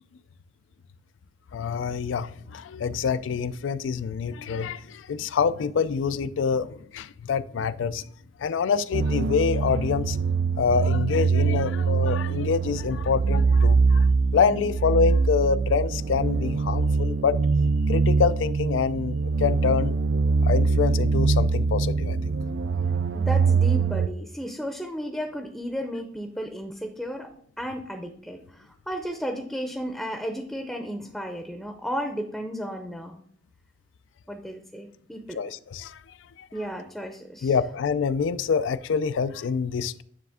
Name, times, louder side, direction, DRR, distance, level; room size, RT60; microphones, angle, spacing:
voice 1, 1.5-8.0 8.4-10.2 10.6-17.4 17.9-20.0 20.4-22.2 35.3-36.0 36.4-36.5 37.4-40.0, left 6 dB, 85° left, 0.4 m, -26 dB
sound 1, 8.9-24.1, right 4 dB, 65° right, 0.3 m, -23 dB
voice 2, 23.1-27.3 27.6-33.2 34.3-35.4 36.5-37.5, equal, ahead, 0.6 m, -34 dB
9.6 x 3.4 x 3.5 m
head